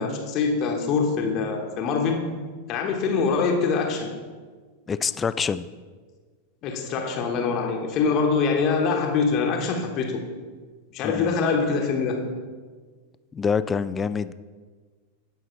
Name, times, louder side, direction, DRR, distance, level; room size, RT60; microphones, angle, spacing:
voice 1, 0.0-2.4 2.7-4.1 6.6-10.3 10.9-12.3, left 5 dB, 35° left, 1 dB, 1.1 m, -24 dB
voice 2, 4.9-5.7 11.0-11.4 13.3-14.3, left 6 dB, 20° left, 14 dB, 0.3 m, -26 dB
16.5 x 5.6 x 3.1 m, 1.5 s
figure-of-eight pair, 90°, 0 cm